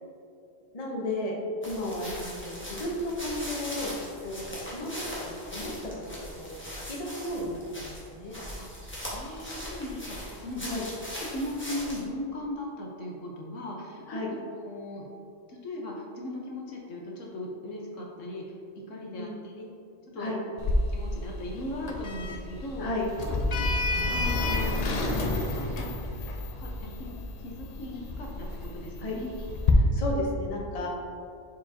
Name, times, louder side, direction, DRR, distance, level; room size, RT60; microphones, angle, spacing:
voice 1, 0.7-1.3 1.6-4.0 4.2-8.4 10.7-10.8 14.1-14.3 19.1-19.4 20.2-20.4 22.8-23.0 29.0-29.2 29.8-30.9, left 1 dB, 35° left, -2 dB, 0.9 m, -34 dB
sound 1, 1.6-12.0, equal, 10° left, 1.3 m, -40 dB
voice 2, 9.1-15.1 15.5-18.5 18.9-19.7 20.1-20.3 20.9-22.9 23.2-23.7 24.1-25.9 26.5-27.1 27.4-29.3, left 1 dB, 80° left, -1 dB, 1.3 m, -38 dB
Sliding door, 20.6-29.7, left 2 dB, 50° left, 0.5 m, -30 dB
7.0 x 4.9 x 2.8 m, 2.5 s
omnidirectional pair, 1.3 m